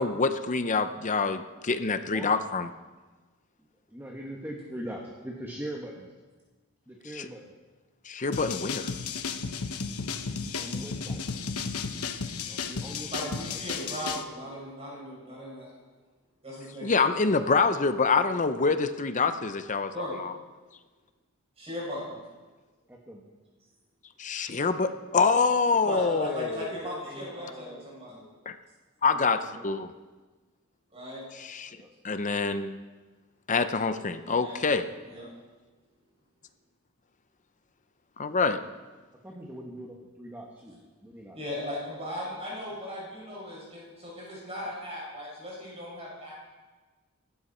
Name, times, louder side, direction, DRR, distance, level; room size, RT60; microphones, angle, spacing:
voice 1, 0.0-2.7 7.1-7.3 8.1-8.9 16.8-19.9 20.2-20.3 24.2-26.7 28.5-28.6 29.0-29.4 29.6-29.9 31.4-31.7 32.0-32.8 33.5-34.9 38.2-38.6, left 4 dB, 35° left, 10 dB, 0.7 m, -26 dB
voice 2, 3.9-6.1 6.9-7.5 10.6-11.2 12.5-13.6 22.9-23.2 25.9-28.2 29.1-29.6 31.7-31.9 39.2-41.4, right 1 dB, 10° right, -1 dB, 1.7 m, -42 dB
Ragga Break, 8.3-14.2, left 5 dB, 85° left, 1.1 m, -34 dB
voice 3, 13.1-15.7 16.4-16.9 19.9-20.2 21.6-22.2 25.8-28.2 30.9-31.2 34.2-34.8 35.1-35.3 41.3-46.3, left 1 dB, 30° right, -4 dB, 6.4 m, -37 dB
24.5 x 13.0 x 4.4 m, 1.3 s
head